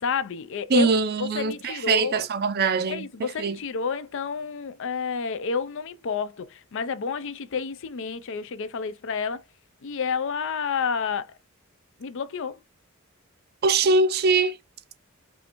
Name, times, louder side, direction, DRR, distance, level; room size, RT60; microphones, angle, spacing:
voice 1, 0.0-0.9 1.2-2.3 2.9-9.4 9.8-11.3 12.0-12.6, left 6 dB, 60° left, 0.5 m, -30 dB
voice 2, 0.7-3.1 3.4-3.6 13.6-14.6, right 4 dB, 45° right, 0.5 m, -22 dB
5.5 x 2.6 x 2.9 m
head